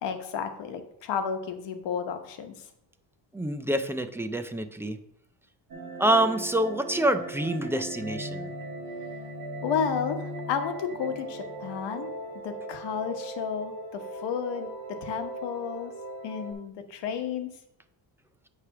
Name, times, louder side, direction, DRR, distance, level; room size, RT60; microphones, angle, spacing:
voice 1, 0.0-2.5 9.6-12.1 12.4-15.9 16.2-17.5, left 7 dB, 70° left, 7 dB, 1.1 m, -32 dB
voice 2, 3.3-5.0 6.0-8.5, right 1 dB, 5° right, 8 dB, 0.3 m, -26 dB
sound 1, 5.7-16.5, right 1 dB, 50° right, 1.8 m, -38 dB
8.2 x 3.3 x 5.7 m, 0.76 s
cardioid pair, 130°, 43 cm